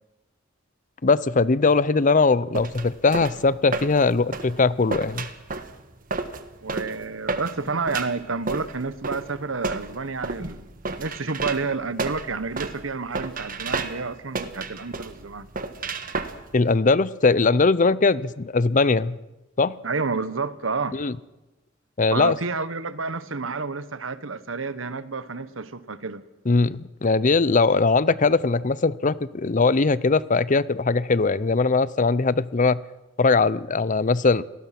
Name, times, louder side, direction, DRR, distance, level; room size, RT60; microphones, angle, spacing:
voice 1, 1.0-5.3 16.5-19.2 19.6-19.8 20.9-21.1 22.0-22.4 26.5-32.8 33.2-34.4, left 4 dB, 40° left, 18 dB, 0.6 m, -20 dB
sound 1, 2.5-16.8, right 3 dB, 45° right, 1.5 m, -32 dB
voice 2, 6.6-10.7 11.0-15.5 17.8-17.9 19.8-21.0 22.1-26.2, right 4 dB, 90° right, 14 dB, 1.2 m, -30 dB
28.0 x 19.0 x 6.0 m, 1.0 s
head